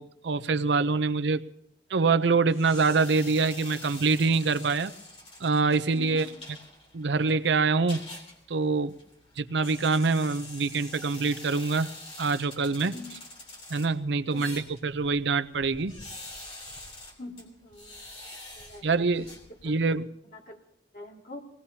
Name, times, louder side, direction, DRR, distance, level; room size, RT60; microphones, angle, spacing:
voice 1, 0.0-1.4 1.9-4.9 5.4-6.3 6.9-8.0 8.5-8.9 9.4-11.9 12.2-12.9 13.7-16.0 18.8-19.3 19.6-20.1, right 4 dB, 80° right, 12 dB, 0.6 m, -25 dB
sound 1, 2.5-20.0, left 2 dB, 35° left, 3.1 m, -46 dB
voice 2, 5.9-6.3 12.9-13.1 14.3-14.7 17.2-18.0 18.6-18.9 19.5-19.7 20.3-20.6 20.9-21.4, left 1 dB, 50° left, -1 dB, 2.3 m, -44 dB
24.5 x 18.5 x 2.8 m, 0.73 s
head